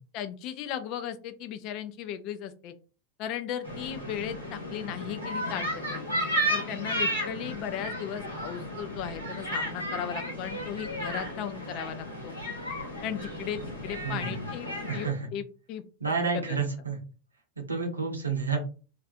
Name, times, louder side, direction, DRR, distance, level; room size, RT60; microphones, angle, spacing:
voice 1, 0.1-2.7 3.2-6.1 6.5-12.4 13.0-15.8 16.3-16.6, left 9 dB, 40° left, 10 dB, 0.4 m, -36 dB
sound 1, 3.6-15.1, equal, 85° left, 1.2 m, -33 dB
voice 2, 14.0-14.3 14.9-15.3 16.0-17.0 17.6-18.6, right 5 dB, 75° right, 2 dB, 0.7 m, -30 dB
2.5 x 2.3 x 2.5 m, 0.35 s
figure-of-eight pair, 90°, 0 cm